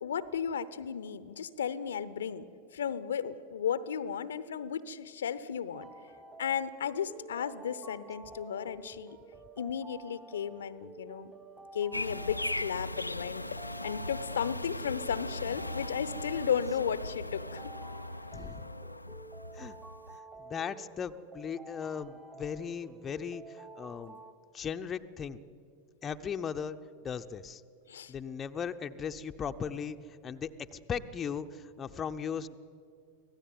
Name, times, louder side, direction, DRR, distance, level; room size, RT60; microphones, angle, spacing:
voice 1, 0.0-5.9 6.4-9.2 9.6-11.3 11.7-17.7 27.9-28.1, left 8 dB, 65° left, 16 dB, 0.8 m, -34 dB
sound 1, 5.7-24.3, right 3 dB, 15° right, 1.2 m, -50 dB
sound 2, 11.9-20.2, left 1 dB, 85° left, 0.5 m, -39 dB
voice 2, 18.3-18.7 19.5-19.8 20.4-24.2 24.5-25.4 26.0-26.8 27.0-27.6 28.1-30.0 30.2-32.6, left 7 dB, 20° left, 7 dB, 0.8 m, -37 dB
25.5 x 16.5 x 9.4 m, 2.4 s
figure-of-eight pair, 90°, 0 cm